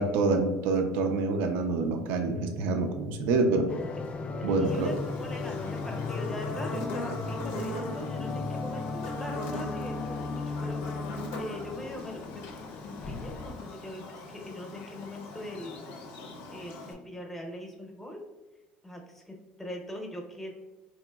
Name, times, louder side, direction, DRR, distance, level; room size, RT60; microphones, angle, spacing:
voice 1, 0.0-3.7 4.4-4.9, right 3 dB, 75° right, 5 dB, 0.4 m, -26 dB
sound 1, 3.7-13.5, left 3 dB, 35° left, 0.3 m, -36 dB
voice 2, 4.2-12.5 12.8-15.8 16.5-18.2 18.8-20.5, left 1 dB, 5° left, 1 dB, 0.7 m, -41 dB
Buzz, 4.6-16.9, left 1 dB, 80° left, 0.6 m, -41 dB
4.0 x 3.0 x 2.3 m, 1.1 s
supercardioid pair, 110°, 4 cm